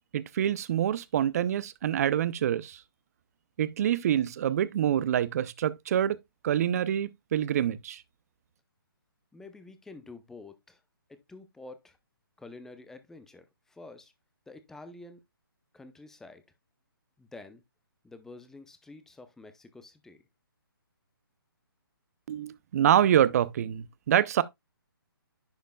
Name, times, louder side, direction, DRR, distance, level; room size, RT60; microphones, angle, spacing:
voice 1, 0.1-2.8 3.6-6.2 6.4-8.0 22.3-24.4, right 10 dB, 40° right, 0.5 m, -26 dB
voice 2, 9.3-10.8 11.1-12.0 12.4-14.1 14.5-15.2 15.7-16.4 17.2-17.6 18.0-20.2, left 3 dB, 5° left, 0.6 m, -48 dB
10.5 x 5.1 x 2.2 m
figure-of-eight pair, 140°, 12 cm